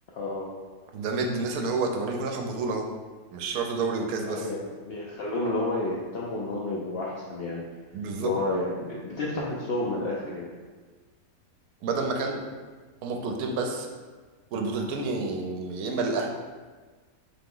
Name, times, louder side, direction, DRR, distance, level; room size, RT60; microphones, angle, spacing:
voice 1, 0.1-0.5 4.3-7.6 8.2-10.5, left 2 dB, 80° left, -4 dB, 0.5 m, -30 dB
voice 2, 0.9-2.8 3.3-4.5 7.9-8.3 11.8-12.4 13.0-13.9 14.5-16.3, right 3 dB, 75° right, 3 dB, 1.0 m, -29 dB
3.7 x 2.9 x 3.7 m, 1.4 s
omnidirectional pair, 1.6 m